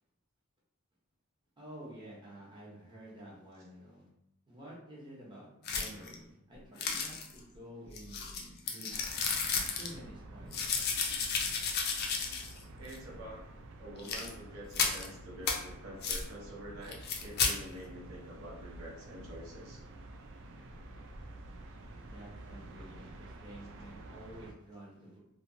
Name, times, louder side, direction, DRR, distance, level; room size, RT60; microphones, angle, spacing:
voice 1, 1.6-4.1 4.5-9.0 9.7-10.7 22.0-25.2, right 1 dB, 20° right, -6 dB, 0.7 m, -50 dB
sound 1, 5.6-6.1 6.8-7.4 7.9-9.9 10.5-12.6 12.9-13.0 14.0-14.3 14.7-15.1 15.5-15.6 16.0-16.2 16.9-17.6, left 5 dB, 45° left, 0.4 m, -33 dB
sound 2, 8.9-24.5, right 1 dB, 60° right, 0.3 m, -50 dB
voice 2, 12.8-13.5 13.8-19.8, equal, 75° right, -3 dB, 0.7 m, -47 dB
2.8 x 2.1 x 2.6 m, 0.81 s
head